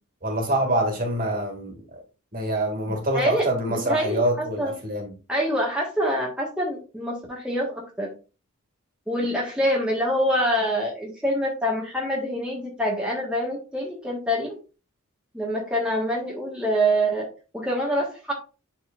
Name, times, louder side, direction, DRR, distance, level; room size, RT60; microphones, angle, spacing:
voice 1, 0.2-2.0 2.3-5.1, right 1 dB, 40° right, 2.3 m, -25 dB
voice 2, 3.1-4.7 5.3-8.1 9.1-14.6 15.3-17.2 17.5-18.3, equal, 5° right, 1.5 m, -25 dB
11.0 x 4.3 x 2.5 m
head